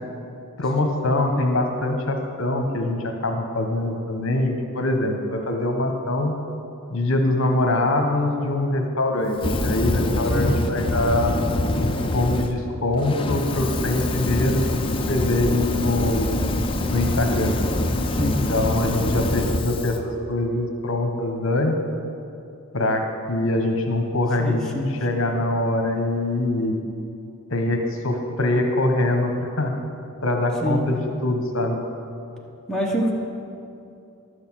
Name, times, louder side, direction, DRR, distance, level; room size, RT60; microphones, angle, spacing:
voice 1, 0.6-6.4 6.9-11.4 11.8-16.3 16.9-17.6 18.1-21.8 22.7-24.6 25.0-26.8 27.5-29.7 30.2-30.9 31.2-31.8, left 2 dB, 60° left, 3 dB, 1.1 m, -23 dB
Fire, 9.3-12.5 12.9-20.0, left 1 dB, 25° left, 0.6 m, -24 dB
voice 2, 18.0-18.4 24.4-24.9 30.6-30.8 32.7-33.1, equal, ahead, -4 dB, 1.1 m, -25 dB
11.5 x 6.6 x 7.5 m, 2.6 s
head